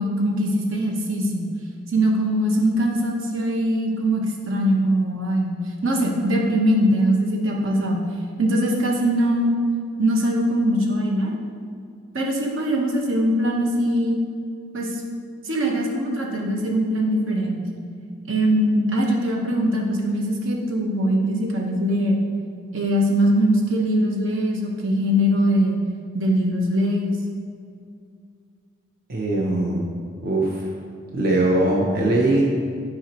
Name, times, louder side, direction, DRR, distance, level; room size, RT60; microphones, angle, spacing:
voice 1, 0.0-1.4 1.9-8.0 8.4-9.6 10.0-11.3 12.1-14.2 14.7-14.9 15.5-17.6 18.3-22.2 22.7-25.8 26.1-27.2, equal, 75° right, 0 dB, 1.0 m, -21 dB
voice 2, 29.1-29.9 30.2-30.6 31.1-32.4, right 2 dB, 45° right, -3 dB, 0.6 m, -21 dB
9.0 x 5.0 x 2.9 m, 2.3 s
head